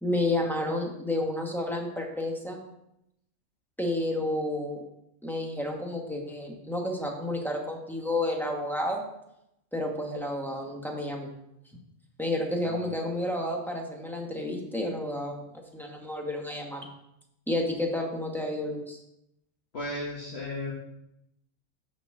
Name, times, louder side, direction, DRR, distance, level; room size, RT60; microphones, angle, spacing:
voice 1, 0.0-2.6 3.8-4.8 5.2-9.0 9.7-11.3 12.2-15.4 15.7-16.9 17.5-19.0, left 1 dB, ahead, -1 dB, 1.1 m, -30 dB
voice 2, 19.7-20.7, left 1 dB, 55° left, -4 dB, 1.4 m, -35 dB
6.5 x 4.3 x 6.5 m, 0.82 s
omnidirectional pair, 1.4 m